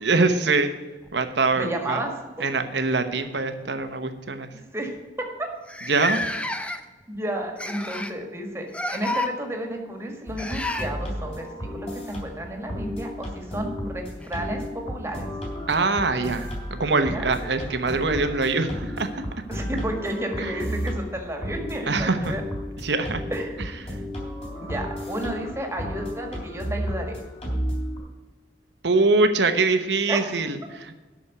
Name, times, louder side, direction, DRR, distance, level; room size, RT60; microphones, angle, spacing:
voice 1, 0.0-0.7 1.1-2.0 2.4-4.5 5.9-6.2 15.7-19.2 20.4-20.5 21.9-22.4 22.8-23.2 28.8-30.9, right 3 dB, 70° right, 8 dB, 1.0 m, -23 dB
sound 1, 1.0-2.2 3.2-3.4 3.8-4.0 4.7-4.8 5.0-5.1 5.7-7.0 7.6-8.2 8.7-9.3 10.4-10.9 13.0-13.1 14.2-14.3, left 1 dB, 5° left, 0.6 m, -30 dB
voice 2, 1.5-2.5 4.7-5.0 7.1-15.2 17.0-17.2 19.5-22.4 23.3-23.8 24.6-27.1 30.1-30.3, right 1 dB, 15° right, 2 dB, 1.7 m, -32 dB
sound 2, 10.3-28.0, equal, 35° left, 3.3 m, -33 dB
8.6 x 6.3 x 8.3 m, 1.2 s
head